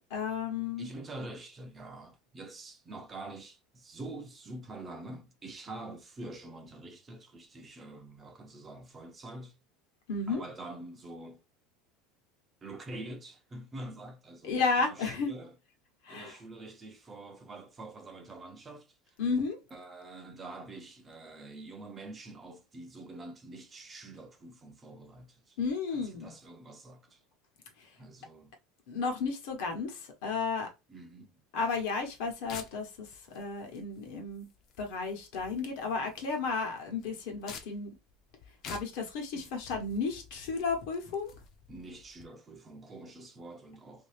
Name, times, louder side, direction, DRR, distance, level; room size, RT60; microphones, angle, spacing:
voice 1, 0.1-0.9 10.1-10.4 14.4-15.3 16.0-16.4 19.2-19.6 25.6-26.3 27.8-27.9 28.9-30.7 31.5-33.1 33.3-34.5 34.8-37.9 38.7-41.3, left 4 dB, 65° left, 1.0 m, -33 dB
voice 2, 0.8-9.5 10.3-11.4 12.6-15.5 16.1-19.2 19.7-25.6 25.9-27.2 28.0-28.5 30.9-31.3 39.3-39.5 41.7-44.1, right 2 dB, 15° right, 0.4 m, -46 dB
sound 1, 31.8-42.3, left 6 dB, 35° left, 0.6 m, -51 dB
2.8 x 2.7 x 3.2 m
cardioid pair, 175°, 0 cm